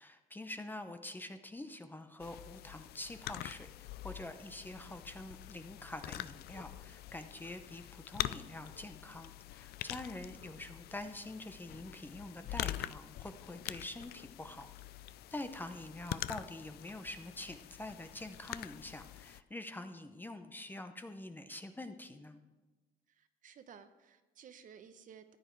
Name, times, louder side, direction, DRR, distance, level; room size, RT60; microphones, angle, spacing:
voice 1, 0.0-14.7 15.3-22.4, left 2 dB, 10° left, 8 dB, 0.8 m, -46 dB
sound 1, 2.2-19.4, left 14 dB, 70° left, 0.4 m, -45 dB
voice 2, 23.1-25.4, right 7 dB, 50° right, 10 dB, 0.9 m, -56 dB
14.0 x 9.1 x 4.6 m, 1.2 s
cardioid pair, 110°, 17 cm